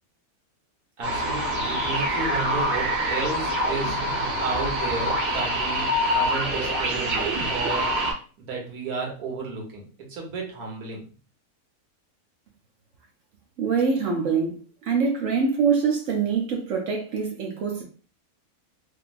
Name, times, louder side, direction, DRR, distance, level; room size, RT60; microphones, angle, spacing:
sound 1, 1.0-8.1, equal, 45° right, 1.0 m, -25 dB
voice 1, 1.0-4.0 4.4-7.9 8.4-9.8 10.1-11.0, right 3 dB, 85° right, 1.5 m, -32 dB
voice 2, 13.6-17.8, right 5 dB, 65° right, 0.9 m, -24 dB
3.0 x 2.6 x 2.4 m
omnidirectional pair, 1.6 m